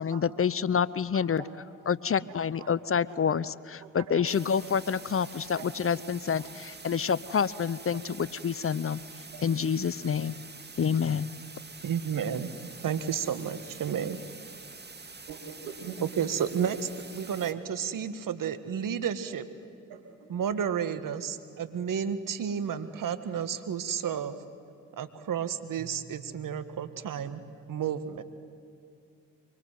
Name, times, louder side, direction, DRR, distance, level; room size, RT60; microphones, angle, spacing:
voice 1, 0.0-1.4 1.9-3.5 3.9-9.0 9.4-10.4 10.8-11.3, left 7 dB, 35° left, 19 dB, 0.8 m, -28 dB
voice 2, 1.1-1.5 2.6-2.7 3.3-3.4 3.8-4.2 5.6-5.7 6.4-6.5 9.3-9.5 15.3-16.0 19.9-20.0, right 6 dB, 85° right, 4 dB, 3.0 m, -43 dB
sound 1, 4.3-17.5, right 4 dB, 25° right, 2.2 m, -46 dB
voice 3, 11.8-12.5 12.8-14.2 16.2-19.5 20.3-24.4 25.0-27.4 27.7-28.2, right 8 dB, 60° right, 11 dB, 1.8 m, -31 dB
24.5 x 24.0 x 9.3 m, 2.5 s
hypercardioid pair, 45°, 37 cm